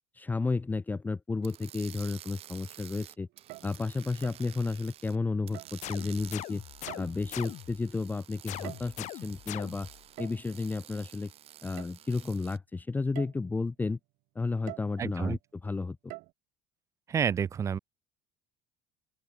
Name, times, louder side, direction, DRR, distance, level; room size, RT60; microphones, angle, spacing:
voice 1, 0.2-3.3 3.6-6.6 7.0-9.9 10.2-11.3 11.6-14.0 14.3-16.0, left 3 dB, 10° left, 0.9 m, -32 dB
sound 1, 1.4-5.2 5.5-12.6, right 12 dB, 40° right, 2.6 m, -51 dB
sound 2, 3.3-3.8 4.2-4.5 5.5-5.9 6.9-7.4 8.4-9.1 10.2-10.5 11.8-11.9 12.5-12.6 13.1-13.5 14.7-15.0 16.1-16.3, right 22 dB, 65° right, 1.6 m, -45 dB
sound 3, 5.8-7.9 8.5-10.0, left 15 dB, 50° left, 1.9 m, -42 dB
voice 2, 15.0-15.4 17.1-17.8, right 7 dB, 20° right, 0.4 m, -29 dB
open air
cardioid pair, 160°, 15 cm